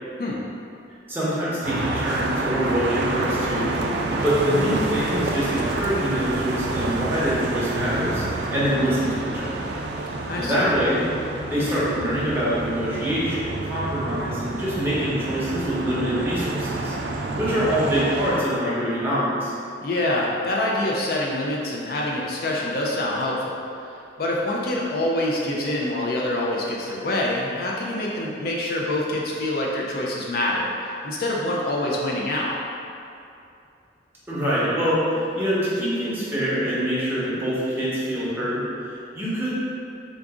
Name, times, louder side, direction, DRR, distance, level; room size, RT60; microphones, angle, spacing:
voice 1, 1.1-3.8 4.2-9.6 10.4-11.1 11.5-19.5 34.3-39.5, equal, 10° right, -10 dB, 0.8 m, -25 dB
sound 1, 1.6-18.4, right 2 dB, 65° right, 0.3 m, -28 dB
voice 2, 10.3-10.7 19.8-23.6 24.2-32.5, left 1 dB, 50° left, -3 dB, 0.4 m, -25 dB
3.8 x 2.5 x 3.5 m, 2.6 s
head